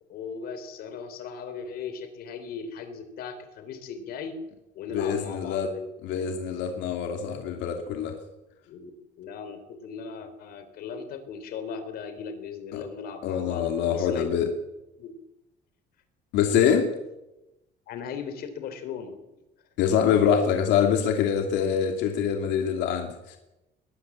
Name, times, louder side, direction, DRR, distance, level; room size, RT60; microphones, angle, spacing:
voice 1, 0.1-4.4 4.8-6.2 8.7-8.9 9.2-14.3 15.0-15.2 17.9-19.2, left 6 dB, 60° left, 9 dB, 3.9 m, -38 dB
voice 2, 4.9-5.7 6.0-8.2 12.7-12.8 13.2-14.5 16.3-16.9 19.8-23.4, left 8 dB, 85° left, 4 dB, 2.8 m, -25 dB
21.5 x 19.0 x 7.4 m, 0.96 s
cardioid pair, 170°, 18 cm